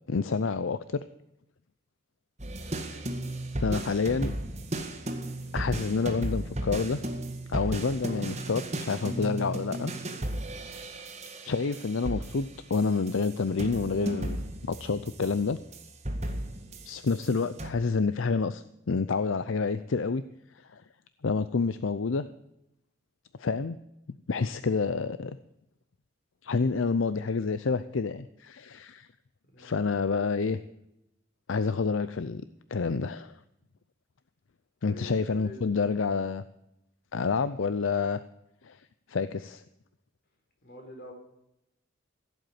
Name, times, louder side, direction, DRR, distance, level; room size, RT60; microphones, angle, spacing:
voice 1, 0.1-1.0 3.6-4.3 5.5-7.0 7.5-9.9 11.4-14.4 14.7-15.6 16.9-20.2 20.7-20.8 21.2-22.3 23.4-23.8 24.3-25.4 26.4-29.1 29.6-30.6 31.5-32.4 32.7-33.3 34.8-36.4 37.1-38.2 38.6-38.8 39.1-39.6, left 4 dB, 75° left, 13 dB, 0.6 m, -28 dB
sound 1, 2.4-17.7, right 1 dB, 35° right, 1.9 m, -35 dB
voice 2, 2.6-3.0 29.5-29.9 34.8-35.7 40.6-41.1, right 1 dB, 50° left, 2 dB, 4.3 m, -47 dB
16.0 x 8.0 x 9.3 m, 0.85 s
head